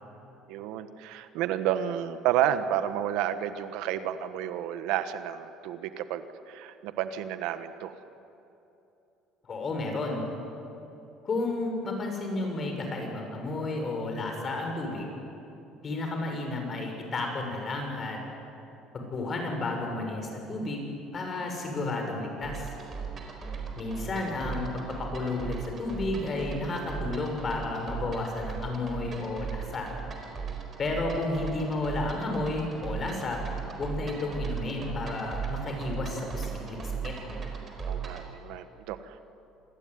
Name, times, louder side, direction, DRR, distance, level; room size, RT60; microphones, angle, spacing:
voice 1, 0.5-7.9 37.8-39.2, right 10 dB, 80° right, 11 dB, 1.3 m, -31 dB
voice 2, 9.4-10.2 11.2-15.1 15.8-18.2 18.9-22.7 23.8-29.9 30.8-33.4 33.8-37.1, left 2 dB, 30° left, 2 dB, 6.4 m, -32 dB
sound 1, 22.4-38.3, right 6 dB, 30° right, 4.3 m, -37 dB
26.5 x 20.0 x 9.7 m, 2.9 s
cardioid pair, 145°, 0 cm